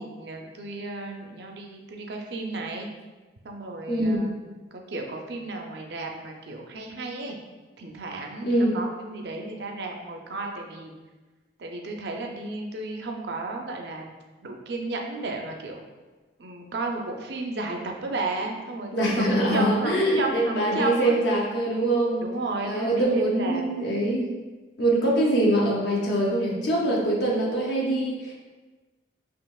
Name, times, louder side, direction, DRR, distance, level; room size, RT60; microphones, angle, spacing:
voice 1, 0.0-2.9 3.4-4.3 4.7-7.4 7.8-10.9 11.6-14.1 14.4-15.8 16.4-21.2 22.2-23.6, right 2 dB, 65° right, 2 dB, 0.5 m, -33 dB
voice 2, 3.9-4.3 8.4-8.8 18.9-22.3 22.6-24.3 24.8-28.3, right 1 dB, 65° left, -3 dB, 0.8 m, -23 dB
5.5 x 2.8 x 2.3 m, 1.3 s
head